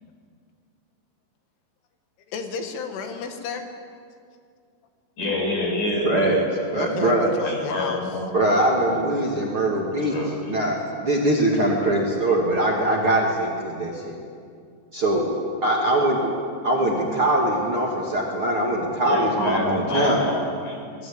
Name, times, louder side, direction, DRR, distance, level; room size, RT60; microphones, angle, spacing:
voice 1, 2.3-3.7 6.8-8.2, left 6 dB, 90° left, 5 dB, 4.3 m, -32 dB
voice 2, 5.2-6.4 6.7-7.0 7.4-8.3 8.9-9.4 10.0-10.4 10.6-10.7 16.8-17.0 19.1-21.1, left 2 dB, 45° left, 0 dB, 7.0 m, -28 dB
voice 3, 6.0-6.4 6.7-7.3 8.3-10.2 10.5-14.1 14.9-15.3 15.6-16.3 16.6-20.2, right 1 dB, 35° right, -2 dB, 2.5 m, -22 dB
25.5 x 20.5 x 8.8 m, 2.3 s
omnidirectional pair, 5.4 m